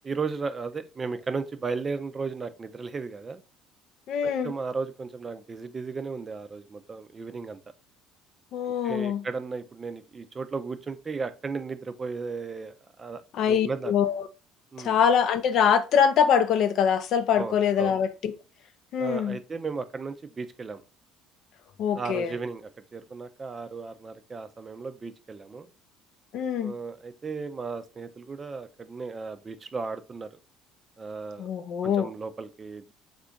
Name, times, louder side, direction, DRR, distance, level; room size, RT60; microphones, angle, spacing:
voice 1, 0.0-3.4 4.2-7.6 8.8-12.7 13.0-13.9 14.7-14.9 17.4-17.9 19.0-20.8 21.9-25.7 26.6-30.3 31.0-31.5 31.8-32.9, right 4 dB, 30° right, 0.4 m, -35 dB
voice 2, 4.1-4.5 8.5-9.2 13.3-14.3 14.8-18.3 18.9-19.4 21.8-22.3 26.3-26.7 31.4-32.1, left 7 dB, 60° left, 0.4 m, -24 dB
3.5 x 2.5 x 3.5 m
hypercardioid pair, 65°, 0 cm